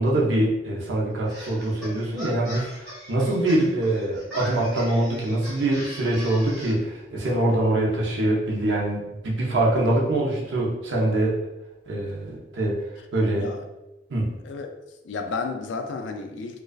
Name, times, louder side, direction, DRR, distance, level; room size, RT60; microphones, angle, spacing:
voice 1, 0.0-11.4 11.9-12.8 13.1-13.5 14.1-14.3, right 1 dB, 75° right, -3 dB, 0.6 m, -24 dB
sound 1, 1.3-6.7, equal, 5° left, 1.3 m, -39 dB
voice 2, 14.4-14.8 15.0-16.6, left 4 dB, 80° left, 6 dB, 0.3 m, -32 dB
2.4 x 2.3 x 2.2 m, 0.99 s
head